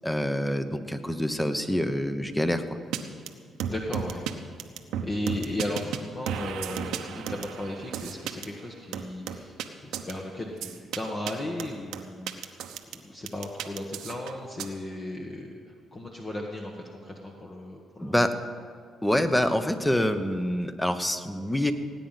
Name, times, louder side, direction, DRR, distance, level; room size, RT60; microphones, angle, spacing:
voice 1, 0.0-2.8 18.0-18.3 19.0-21.7, left 1 dB, 10° left, 9 dB, 1.0 m, -26 dB
sound 1, 2.9-3.0 3.3-3.4 3.6-4.3 4.6-6.0 6.3-8.5 8.9-9.7 9.9-10.1 10.6-11.0 11.3-11.4 11.6-13.0 13.3-14.7, right 9 dB, 90° right, 0.9 m, -33 dB
voice 2, 3.6-4.2 5.0-12.6 12.9-15.6 15.9-18.3, left 1 dB, 30° left, 0 dB, 1.5 m, -35 dB
18.0 x 9.1 x 5.8 m, 2.1 s
cardioid pair, 90°, 0 cm